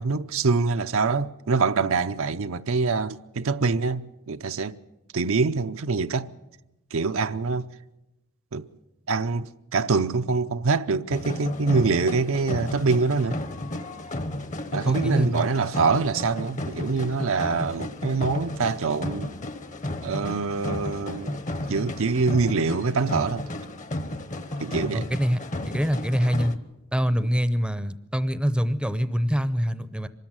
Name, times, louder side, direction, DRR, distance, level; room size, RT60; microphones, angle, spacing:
voice 1, 0.0-4.8 5.1-6.3 6.9-7.7 8.5-8.7 9.1-13.4 14.7-19.3 20.0-21.4 21.7-23.5 24.6-25.1, right 4 dB, 65° right, 0.6 m, -25 dB
sound 1, 11.1-26.6, left 1 dB, 35° left, 1.0 m, -33 dB
voice 2, 14.9-15.4 24.9-25.4 25.7-26.5 26.9-30.1, equal, 5° right, 0.7 m, -25 dB
24.0 x 13.5 x 9.0 m
head